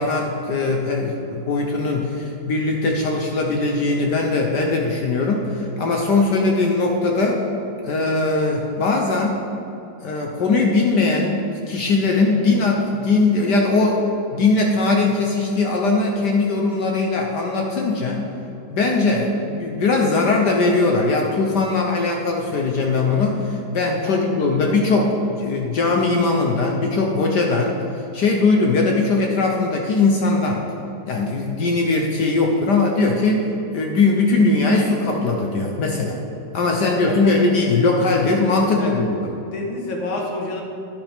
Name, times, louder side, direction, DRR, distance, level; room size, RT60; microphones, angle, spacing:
voice 1, 0.0-7.4 7.8-9.4 10.0-11.4 11.7-14.0 14.3-18.3 18.7-27.8 28.1-30.6 31.1-36.2 36.5-39.3, left 3 dB, 60° left, 1 dB, 1.4 m, -20 dB
voice 2, 24.1-24.5 36.7-37.7 38.6-39.0 39.3-40.6, left 2 dB, 75° left, 0 dB, 2.1 m, -29 dB
11.5 x 10.5 x 3.6 m, 2.8 s
omnidirectional pair, 2.2 m